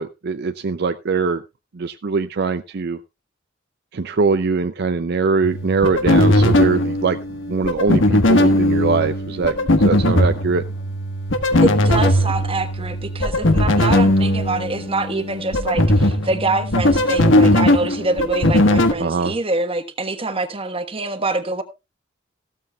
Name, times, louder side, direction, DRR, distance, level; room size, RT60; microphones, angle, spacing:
voice 1, 0.0-1.4 1.7-3.0 3.9-7.2 7.5-10.6 19.0-19.3, right 4 dB, 55° right, 0.5 m, -22 dB
sound 1, 5.4-18.9, left 1 dB, 80° left, 1.4 m, -18 dB
voice 2, 11.6-21.6, right 2 dB, 30° right, 1.3 m, -25 dB
15.0 x 13.0 x 2.3 m
head